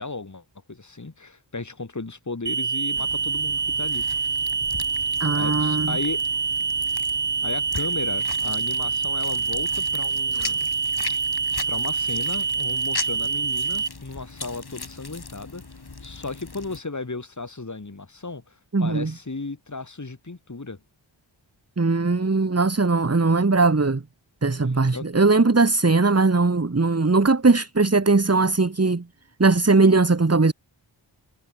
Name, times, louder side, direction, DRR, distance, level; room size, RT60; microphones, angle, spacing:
voice 1, 0.0-4.1 5.3-6.2 7.4-10.7 11.1-11.2 11.7-15.6 16.0-20.8 24.9-25.1, left 3 dB, 40° left, 3.3 m, -35 dB
sound 1, 2.5-13.9, right 5 dB, 60° right, 2.2 m, -26 dB
sound 2, 3.0-16.8, left 3 dB, 55° left, 5.2 m, -39 dB
voice 2, 5.2-5.9 10.4-10.5 18.7-19.1 21.8-24.0 24.4-29.0 29.4-30.5, right 3 dB, 30° right, 1.8 m, -19 dB
wide cardioid pair, 60°, 47 cm